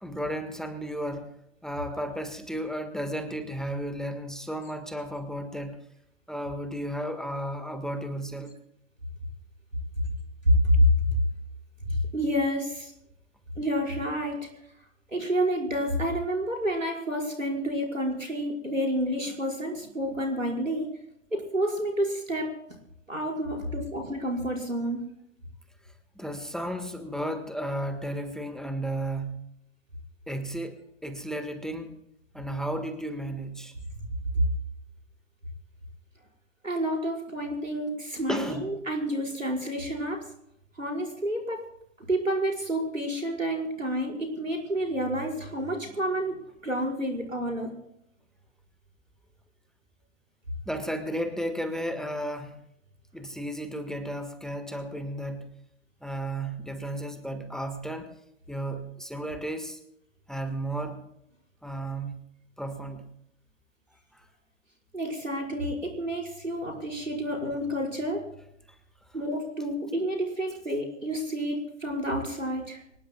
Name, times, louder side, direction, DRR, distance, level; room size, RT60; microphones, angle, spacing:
voice 1, 0.0-1.3 1.6-5.8 6.3-8.5 26.1-29.5 30.3-32.0 32.3-33.7 38.3-38.6 50.6-52.5 53.1-55.5 56.0-58.1 58.5-59.8 60.3-61.0 61.6-62.1 62.6-63.1 64.1-64.2 68.7-68.8, right 1 dB, ahead, 7 dB, 1.5 m, -33 dB
voice 2, 10.5-10.9 11.9-12.9 13.6-14.4 15.1-20.9 21.3-22.5 23.1-25.1 36.6-40.2 40.8-41.6 42.0-47.7 64.9-68.2 69.1-72.8, equal, 90° right, 0 dB, 5.3 m, -29 dB
24.5 x 19.5 x 2.3 m, 0.77 s
figure-of-eight pair, 105°, 38 cm